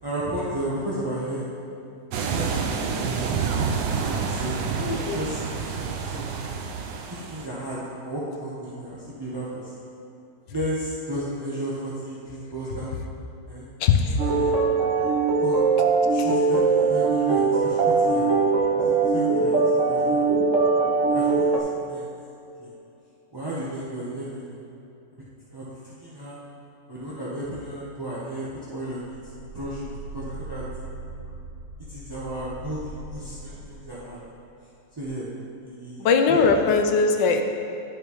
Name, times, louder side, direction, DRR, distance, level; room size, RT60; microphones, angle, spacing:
voice 1, 0.0-1.5 2.3-3.3 4.0-6.6 7.1-9.8 10.5-12.9 13.5-13.7 14.1-14.5 15.4-15.6 16.1-18.4 18.8-19.5 19.9-20.4 21.1-22.1 22.6-22.7 23.3-24.6 25.5-25.7 26.0-26.4 26.9-29.2 29.5-29.8 30.1-30.6 31.9-34.2 35.0-35.3 35.6-36.4, right 1 dB, 20° right, -9 dB, 0.6 m, -34 dB
sound 1, 2.1-7.5, right 5 dB, 80° right, 1.3 m, -28 dB
voice 2, 4.7-5.2 13.8-14.1 36.0-37.4, left 5 dB, 80° left, 5 dB, 1.3 m, -20 dB
sound 2, 14.2-21.6, right 4 dB, 60° right, 0.8 m, -21 dB
sound 3, 28.9-34.5 35.0-35.1, right 1 dB, 45° left, 2.3 m, -40 dB
11.0 x 6.5 x 3.1 m, 2.7 s
omnidirectional pair, 2.0 m